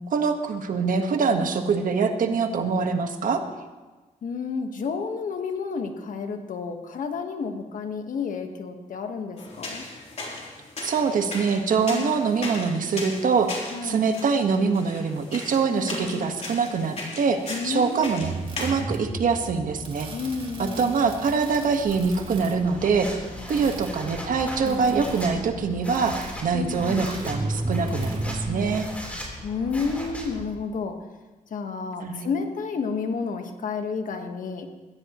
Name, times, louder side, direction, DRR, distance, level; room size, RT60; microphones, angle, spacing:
voice 1, 0.1-3.4 10.8-18.3 18.6-20.1 20.6-23.1 23.5-28.9 32.0-32.3, right 5 dB, 70° right, 5 dB, 1.4 m, -24 dB
voice 2, 4.2-9.8 11.9-12.2 13.7-14.0 15.7-16.3 17.5-18.1 20.1-21.0 23.4-24.3 24.6-25.1 26.5-27.1 29.4-31.0 31.5-34.7, left 5 dB, 70° left, 5 dB, 1.4 m, -31 dB
sound 1, 9.4-18.8, left 2 dB, 50° left, 3.4 m, -37 dB
sound 2, 18.2-28.8, right 1 dB, 40° right, 2.6 m, -35 dB
sound 3, 21.9-30.5, equal, 10° left, 3.8 m, -38 dB
21.5 x 15.5 x 3.1 m, 1.2 s
wide cardioid pair, 120°, 14 cm